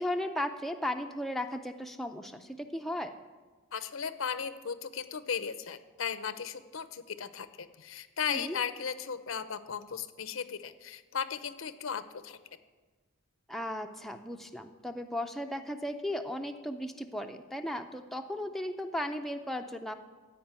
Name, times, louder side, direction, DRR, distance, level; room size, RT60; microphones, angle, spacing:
voice 1, 0.0-3.2 8.3-8.6 13.5-19.9, left 1 dB, ahead, 4 dB, 0.5 m, -36 dB
voice 2, 3.7-12.4, left 7 dB, 75° left, 13 dB, 0.7 m, -36 dB
15.0 x 5.1 x 8.8 m, 1.3 s
head